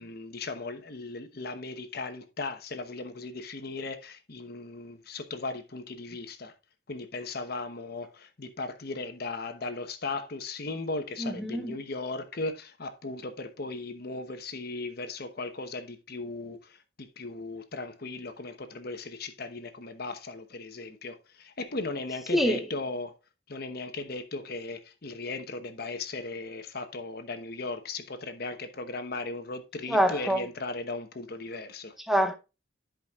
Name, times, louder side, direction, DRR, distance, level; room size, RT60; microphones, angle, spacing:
voice 1, 0.0-6.5 6.9-23.1 23.5-32.0, left 3 dB, 55° left, 1.0 m, -37 dB
voice 2, 11.2-11.7 22.3-22.6 29.9-30.4 32.1-32.4, equal, ahead, 0.7 m, -25 dB
13.5 x 5.1 x 2.4 m
head